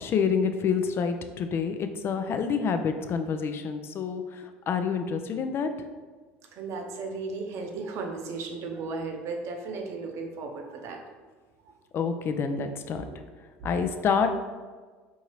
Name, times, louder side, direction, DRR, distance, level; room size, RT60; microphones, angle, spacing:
voice 1, 0.0-4.2 4.7-5.7 11.9-13.0 13.6-14.3, left 6 dB, 45° left, 8 dB, 0.4 m, -27 dB
voice 2, 6.5-11.0, right 4 dB, 55° right, 2 dB, 0.7 m, -35 dB
4.5 x 2.7 x 3.0 m, 1.4 s
hypercardioid pair, 80°, 6 cm